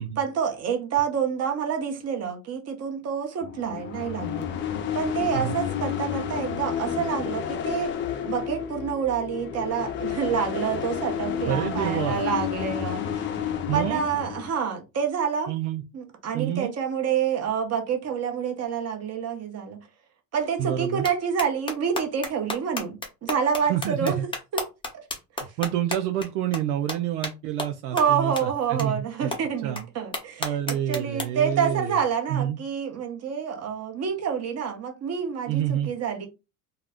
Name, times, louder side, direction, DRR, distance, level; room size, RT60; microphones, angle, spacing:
voice 1, 0.2-4.5 4.9-13.4 13.7-15.5 15.9-19.8 20.3-24.2 24.5-24.7 27.9-36.3, right 7 dB, 30° right, 0.9 m, -28 dB
sound 1, 3.4-14.5, left 8 dB, 30° left, 0.3 m, -31 dB
voice 2, 11.5-12.2 13.7-14.0 15.5-15.8 16.3-16.7 20.6-21.0 23.7-24.3 25.6-29.3 29.6-29.8 30.4-32.0 32.3-32.6 35.5-35.9, right 11 dB, 65° right, 0.6 m, -28 dB
sound 2, 21.0-21.1 21.4-26.3 26.5-26.6 26.9-27.0 27.2-27.3 27.6-27.7 28.0-28.1 28.4-28.5 28.8-28.9 29.3-29.4 29.8-29.9 30.1-31.2, left 2 dB, 10° left, 0.8 m, -31 dB
2.3 x 2.1 x 3.5 m
hypercardioid pair, 85°, 48 cm